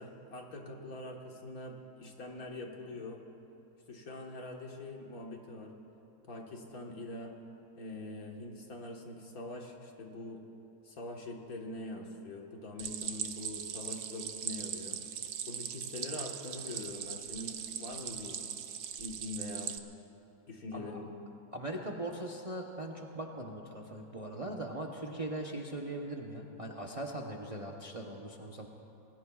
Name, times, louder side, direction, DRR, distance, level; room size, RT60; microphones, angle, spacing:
voice 1, 0.0-3.2 3.9-5.7 6.3-7.3 7.7-10.4 10.8-15.0 15.5-18.4 19.0-19.7 20.5-21.1, left 2 dB, 65° left, 1 dB, 1.9 m, -43 dB
Stream, 12.8-19.8, right 8 dB, 75° right, 1.2 m, -40 dB
voice 2, 21.5-28.7, right 1 dB, 30° right, 0 dB, 0.8 m, -40 dB
27.5 x 20.0 x 2.4 m, 2.9 s
omnidirectional pair, 1.6 m